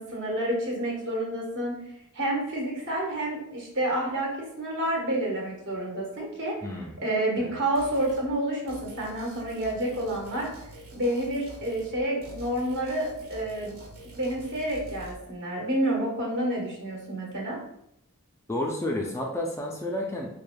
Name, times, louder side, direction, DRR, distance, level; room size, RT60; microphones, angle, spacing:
voice 1, 0.0-1.8 2.1-4.3 4.6-6.5 7.0-10.5 10.9-13.8 14.1-17.6, right 1 dB, 55° right, -2 dB, 1.3 m, -29 dB
voice 2, 6.6-7.0 7.4-7.6 18.5-20.3, left 1 dB, 10° left, 0 dB, 0.3 m, -31 dB
sound 1, 7.8-8.3 8.7-12.0 12.2-15.1, right 2 dB, 75° right, 1.5 m, -46 dB
4.4 x 3.3 x 2.2 m, 0.78 s
head